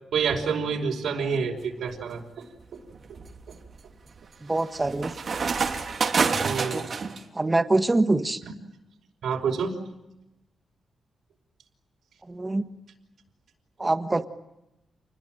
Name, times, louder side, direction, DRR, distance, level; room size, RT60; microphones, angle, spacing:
voice 1, 0.1-2.2 6.4-6.9 8.4-8.5 9.2-9.7, right 6 dB, 90° right, 0 dB, 5.3 m, -27 dB
sound 1, 1.6-2.0 2.6-7.2, right 5 dB, 45° right, 2.9 m, -28 dB
voice 2, 4.4-5.2 6.7-6.9 7.3-8.4 12.3-12.6 13.8-14.3, right 2 dB, 15° right, 8 dB, 1.6 m, -24 dB
29.5 x 21.5 x 9.2 m, 0.93 s
wide cardioid pair, 140°, 0 cm